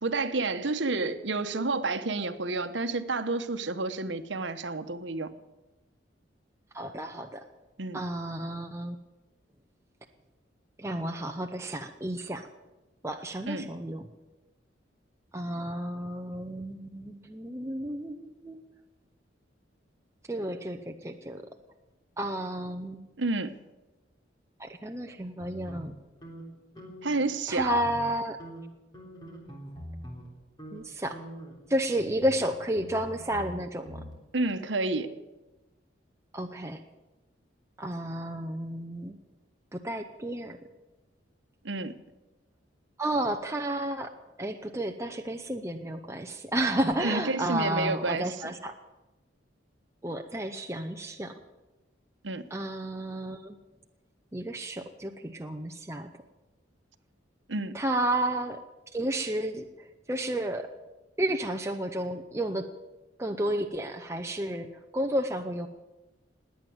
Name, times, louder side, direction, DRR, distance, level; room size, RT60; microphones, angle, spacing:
voice 1, 0.0-5.3 7.8-8.0 13.5-13.7 23.2-23.6 27.0-27.8 34.3-35.1 41.6-42.0 47.0-48.4 52.2-52.4 57.5-57.8, right 3 dB, 75° right, 10 dB, 1.1 m, -30 dB
voice 2, 6.7-7.5 7.9-9.0 10.8-12.5 13.0-14.1 15.3-18.6 20.3-21.6 22.2-23.0 24.6-25.9 27.5-28.4 30.7-31.2 31.7-34.0 36.3-36.8 37.8-39.2 39.7-40.6 43.0-44.1 44.4-48.7 50.0-51.4 52.5-53.6 54.3-56.1 57.7-58.6 58.9-60.7 61.2-62.7 63.2-65.7, right 1 dB, 15° right, 4 dB, 0.7 m, -32 dB
sound 1, 25.4-27.3 27.5-28.1 28.4-30.3 30.6-30.8 31.1-34.1, equal, 20° left, 3.6 m, -44 dB
20.0 x 9.0 x 8.0 m, 1.1 s
head